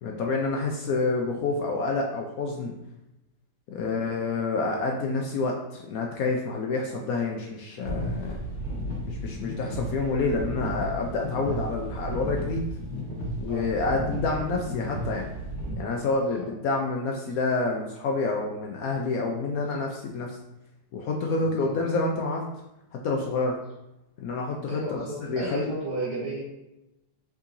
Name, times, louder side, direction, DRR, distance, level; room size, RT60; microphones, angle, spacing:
voice 1, 0.0-2.7 3.7-8.4 9.0-12.6 13.4-15.3 15.7-20.4 20.9-22.4 22.9-23.6 24.2-25.0 25.3-25.7, left 3 dB, 70° left, 0 dB, 0.9 m, -28 dB
sound 1, 7.8-15.7, equal, 30° left, 1.2 m, -33 dB
voice 2, 13.5-14.4 16.3-16.5 21.4-21.7 24.7-26.4, right 1 dB, 75° right, -7 dB, 2.0 m, -35 dB
5.5 x 3.7 x 2.6 m, 0.90 s
omnidirectional pair, 1.9 m